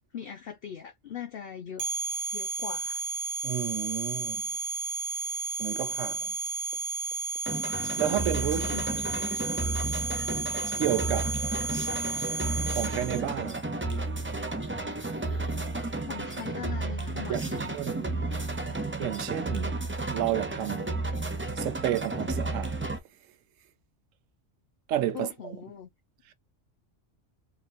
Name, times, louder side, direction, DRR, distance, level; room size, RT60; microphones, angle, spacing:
voice 1, 0.1-1.9 2.3-3.0 8.6-8.9 15.9-17.8 25.1-25.9, left 8 dB, 50° left, 1.0 m, -40 dB
sound 1, 1.8-13.2, right 3 dB, 60° right, 0.6 m, -33 dB
voice 2, 3.4-4.5 5.3-6.4 8.0-8.8 10.8-11.4 12.7-13.7 17.3-18.2 18.6-19.8 20.1-21.0 21.6-22.8 24.9-25.6 26.3-26.4, right 12 dB, 85° right, 1.0 m, -32 dB
sound 2, 7.5-23.0, right 2 dB, 20° right, 0.3 m, -32 dB
3.7 x 3.1 x 2.6 m
omnidirectional pair, 1.3 m